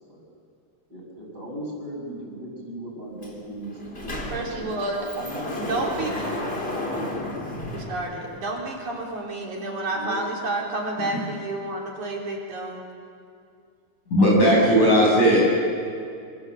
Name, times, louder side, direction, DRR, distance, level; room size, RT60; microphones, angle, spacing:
voice 1, 0.9-4.3 4.6-6.2 6.9-7.2 9.9-10.3 14.2-15.4, right 1 dB, 20° right, -1 dB, 7.6 m, -37 dB
Sliding door, 3.2-3.3 3.6-8.6, left 1 dB, 15° left, 3.1 m, -33 dB
voice 2, 4.3-5.1 5.6-6.3 7.7-12.8, right 2 dB, 45° right, -2 dB, 4.8 m, -30 dB
voice 3, 14.1-15.4, equal, 45° left, -3 dB, 7.6 m, -17 dB
27.5 x 25.5 x 7.8 m, 2.4 s
omnidirectional pair, 4.8 m